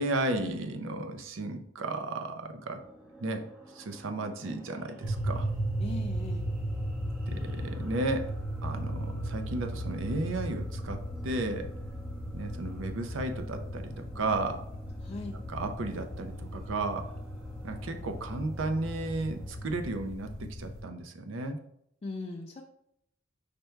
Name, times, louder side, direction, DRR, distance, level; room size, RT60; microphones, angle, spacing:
voice 1, 0.0-2.8 3.2-3.4 3.7-5.5 7.3-8.3 8.6-11.7 12.3-14.6 15.5-17.1 17.6-20.3 20.6-21.6, right 2 dB, 80° right, 7 dB, 0.6 m, -34 dB
sound 1, 2.6-19.9, right 1 dB, 5° right, 0.6 m, -51 dB
sound 2, 5.0-20.8, right 1 dB, 50° right, 1.0 m, -36 dB
voice 2, 5.8-6.5 15.0-15.4 22.0-22.6, left 2 dB, 30° left, 1 dB, 0.3 m, -38 dB
5.1 x 2.2 x 4.4 m, 0.75 s
head